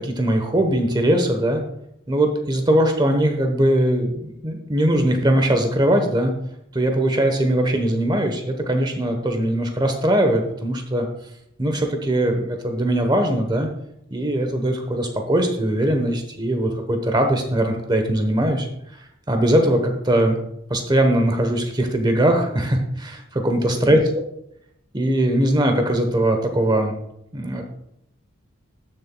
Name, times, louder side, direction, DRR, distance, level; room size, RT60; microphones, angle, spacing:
voice 1, 0.0-1.6 2.1-6.3 6.7-11.1 11.6-13.7 14.1-18.7 19.3-20.4 20.7-24.0 24.9-26.9 27.3-27.6, right 1 dB, 20° right, 4 dB, 1.0 m, -20 dB
12.5 x 6.9 x 2.3 m, 0.79 s
head